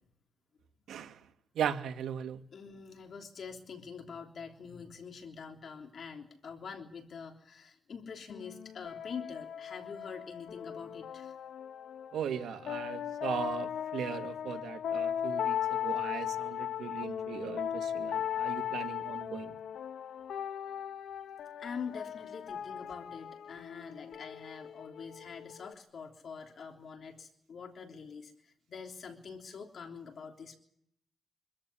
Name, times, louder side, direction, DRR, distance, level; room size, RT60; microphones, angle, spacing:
voice 1, 1.6-2.4 12.1-19.5, right 9 dB, 80° right, 2.2 m, -38 dB
voice 2, 2.5-11.3 21.6-30.6, left 6 dB, 50° left, 3.3 m, -45 dB
sound 1, 8.3-25.7, left 9 dB, 70° left, 1.1 m, -38 dB
25.5 x 14.0 x 9.9 m
cardioid pair, 140°, 0 cm